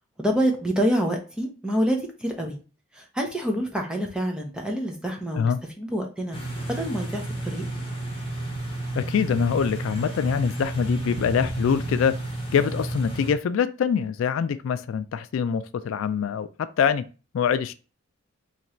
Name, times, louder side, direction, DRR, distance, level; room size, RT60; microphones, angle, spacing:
voice 1, 0.2-2.6 2.9-6.4 6.7-7.7, equal, 5° right, 0.6 m, -27 dB
sound 1, 6.3-13.3, right 2 dB, 25° left, 1.0 m, -32 dB
voice 2, 8.9-12.2 12.5-16.5 16.8-17.0 17.3-17.7, left 7 dB, 75° left, 0.3 m, -24 dB
3.0 x 2.5 x 4.2 m
head